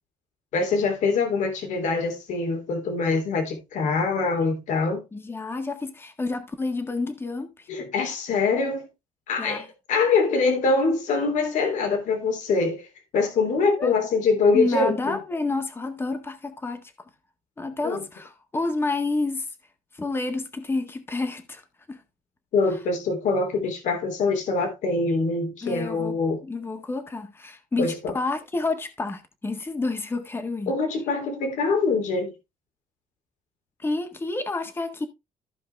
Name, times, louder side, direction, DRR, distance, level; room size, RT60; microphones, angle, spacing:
voice 1, 0.5-5.0 7.7-8.9 9.3-12.9 13.1-15.2 17.8-18.0 22.5-26.4 27.8-28.1 30.7-32.3, left 4 dB, 70° left, 3.2 m, -24 dB
voice 2, 5.1-7.7 9.4-9.7 13.8-13.9 14.5-17.1 17.6-19.5 19.9-21.6 21.9-22.0 25.6-30.7 33.8-35.1, left 3 dB, 15° left, 1.6 m, -29 dB
14.5 x 5.0 x 3.4 m
cardioid pair, 130°, 13 cm